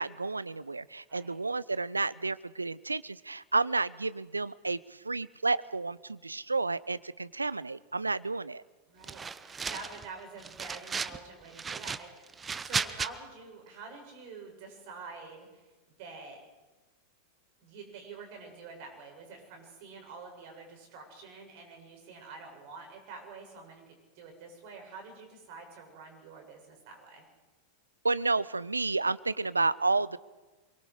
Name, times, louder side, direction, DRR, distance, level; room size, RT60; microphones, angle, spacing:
voice 1, 0.0-8.6 28.0-30.2, right 3 dB, 80° right, 20 dB, 0.7 m, -31 dB
voice 2, 8.9-12.3 12.6-15.7 16.0-16.4 17.6-27.2, right 4 dB, 45° right, 3 dB, 7.9 m, -47 dB
sound 1, 9.0-10.1 10.4-11.2 11.5-13.1, right 5 dB, 15° right, 0.9 m, -35 dB
27.5 x 23.5 x 5.1 m, 1.2 s
figure-of-eight pair, 90°, 0 cm